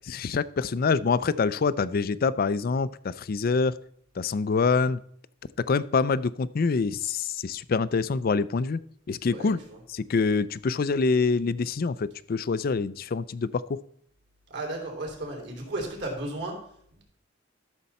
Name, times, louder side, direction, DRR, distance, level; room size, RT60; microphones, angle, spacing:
voice 1, 0.1-3.7 4.2-5.0 5.7-8.8 9.1-9.6 9.9-13.8, left 4 dB, 50° left, 17 dB, 0.4 m, -25 dB
voice 2, 9.3-9.8 14.5-16.6, right 2 dB, 60° right, 0 dB, 3.3 m, -34 dB
12.5 x 6.7 x 4.2 m, 0.67 s
head